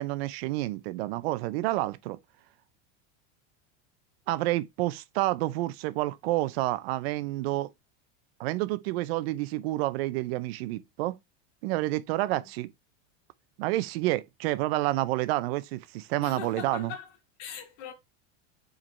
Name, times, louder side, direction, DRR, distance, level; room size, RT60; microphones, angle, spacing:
voice 1, 0.0-2.2 4.3-7.7 8.4-11.2 11.6-12.7 13.6-16.9, right 17 dB, 55° right, 0.5 m, -29 dB
voice 2, 16.2-17.9, left 8 dB, 60° left, 2.3 m, -41 dB
4.9 x 4.6 x 4.2 m
supercardioid pair, 170°, 36 cm